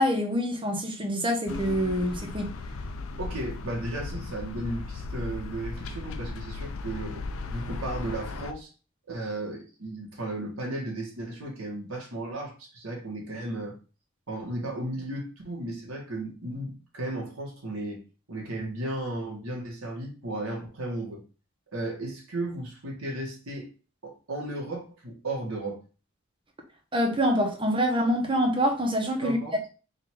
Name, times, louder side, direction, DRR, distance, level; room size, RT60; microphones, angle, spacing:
voice 1, 0.0-2.5 26.9-29.4, equal, 25° right, 0.8 m, -25 dB
sound 1, 1.5-8.5, left 3 dB, 80° left, 0.5 m, -36 dB
voice 2, 3.2-8.7 9.1-13.7 14.3-18.0 18.3-21.2 21.7-23.7 24.0-25.8 29.2-29.5, right 1 dB, 85° right, 1.5 m, -35 dB
3.8 x 2.6 x 4.4 m
head